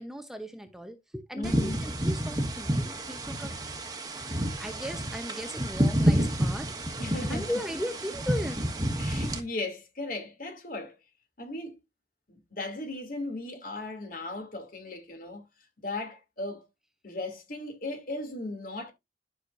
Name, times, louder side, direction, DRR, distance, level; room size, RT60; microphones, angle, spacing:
voice 1, 0.0-3.6 4.3-6.8 7.3-8.8, equal, 5° right, 0.8 m, -37 dB
voice 2, 1.4-1.8 7.0-7.5 9.0-10.9 11.4-11.7 12.3-15.5 15.8-16.7 17.0-18.9, left 2 dB, 50° left, 2.7 m, -37 dB
sound 1, 1.4-9.4, right 1 dB, 20° right, 1.4 m, -29 dB
11.5 x 6.4 x 2.6 m
head